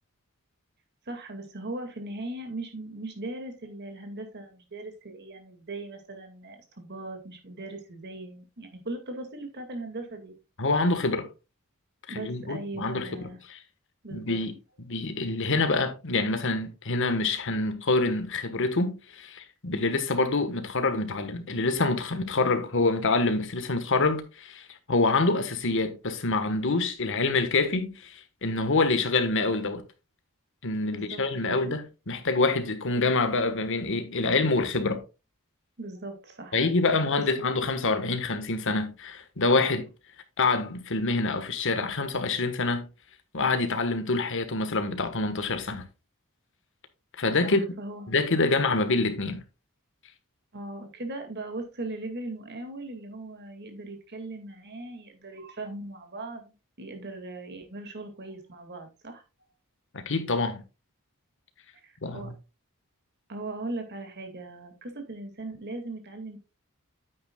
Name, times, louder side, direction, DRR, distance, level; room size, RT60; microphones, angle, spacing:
voice 1, 1.1-10.3 12.1-13.4 14.0-14.4 30.9-31.7 35.8-36.6 47.4-48.1 50.5-59.2 61.8-62.3 63.3-66.4, right 2 dB, 50° right, 2.1 m, -39 dB
voice 2, 10.6-11.3 12.1-13.6 14.1-29.8 30.6-35.0 36.5-39.9 40.4-42.9 43.3-45.9 47.2-47.6 48.1-49.4 59.9-60.6 62.0-62.3, left 3 dB, 60° left, 1.4 m, -26 dB
9.3 x 9.2 x 2.3 m
head